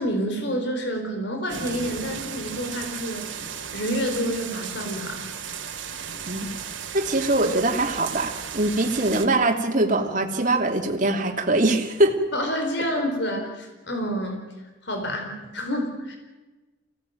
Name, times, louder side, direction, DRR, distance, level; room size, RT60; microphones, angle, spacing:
voice 1, 0.0-3.3 3.7-5.3 12.3-14.5 14.8-16.2, equal, 55° left, 4 dB, 4.3 m, -28 dB
sound 1, 1.5-9.3, right 7 dB, 70° right, 2.5 m, -35 dB
voice 2, 6.9-12.2, right 2 dB, 40° right, 2 dB, 2.8 m, -22 dB
24.5 x 17.5 x 9.3 m, 1.2 s
head